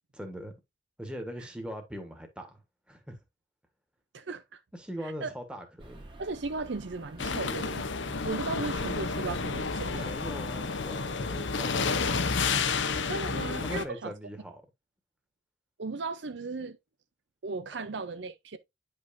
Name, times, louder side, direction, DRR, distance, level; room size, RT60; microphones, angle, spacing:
voice 1, 0.1-0.5 1.0-2.6 2.9-3.2 4.7-6.0 10.0-12.0 13.3-14.6, equal, 5° right, 1.4 m, -41 dB
voice 2, 4.1-4.6 5.0-5.3 6.2-7.9 8.2-10.1 13.1-14.1 15.8-16.8 17.4-18.6, right 3 dB, 70° right, 0.6 m, -36 dB
sound 1, 5.8-11.2, right 1 dB, 25° right, 1.4 m, -48 dB
sound 2, 7.2-13.9, left 4 dB, 75° left, 0.8 m, -30 dB
9.4 x 5.4 x 2.6 m
head